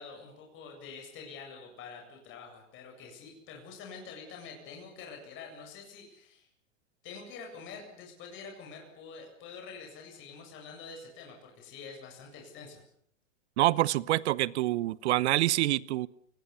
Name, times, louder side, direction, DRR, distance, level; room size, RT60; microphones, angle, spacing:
voice 1, 0.0-6.5 7.0-12.8, left 5 dB, 30° left, 2 dB, 7.9 m, -46 dB
voice 2, 13.6-16.1, right 16 dB, 60° right, 22 dB, 0.9 m, -26 dB
29.5 x 20.0 x 7.1 m, 0.64 s
supercardioid pair, 150°, 38 cm